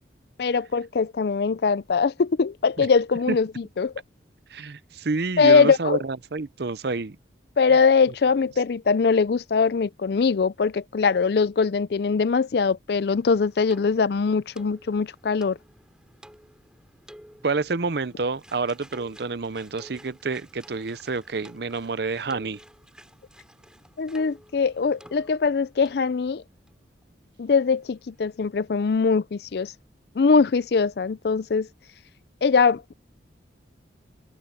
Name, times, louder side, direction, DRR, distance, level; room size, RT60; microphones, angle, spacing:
voice 1, 0.4-3.9 5.4-6.0 7.6-15.6 24.0-26.4 27.4-29.7 30.2-31.7 32.4-32.9, left 5 dB, 60° left, 0.4 m, -22 dB
voice 2, 4.5-7.2 17.4-22.6, right 4 dB, 60° right, 0.6 m, -28 dB
sound 1, 13.1-25.6 25.8-26.1 26.7-26.8 27.0-27.1, equal, 5° right, 4.0 m, -52 dB
head